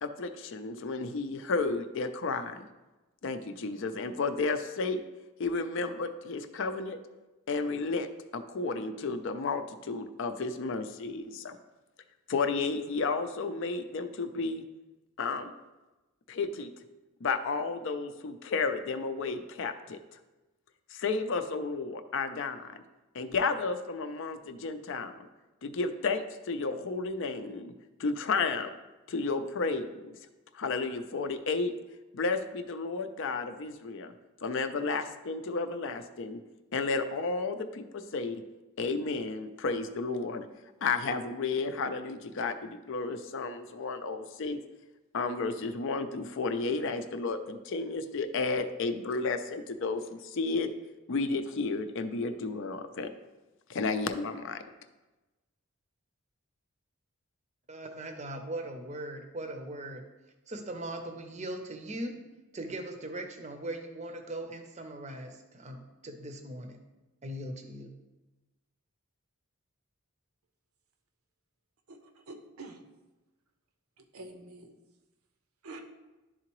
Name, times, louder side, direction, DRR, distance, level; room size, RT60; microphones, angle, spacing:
voice 1, 0.0-2.7 3.2-5.0 5.4-7.0 7.5-8.1 8.3-11.6 12.3-14.6 15.2-15.5 16.3-16.7 17.2-20.0 20.9-22.8 23.1-25.3 25.6-27.7 28.0-28.7 29.1-30.2 30.5-31.7 32.1-34.1 34.4-36.4 36.7-38.4 38.8-40.5 40.8-44.6 45.1-50.7 51.1-53.1 53.7-54.6, left 4 dB, 60° left, 9 dB, 0.4 m, -32 dB
voice 2, 57.7-60.0 60.5-62.2 62.5-66.8 67.2-67.9, right 1 dB, 30° right, 6 dB, 0.6 m, -39 dB
voice 3, 71.9-72.8 74.0-74.7 75.6-75.8, right 2 dB, 80° right, 5 dB, 0.7 m, -47 dB
11.0 x 3.8 x 3.0 m, 1.1 s
head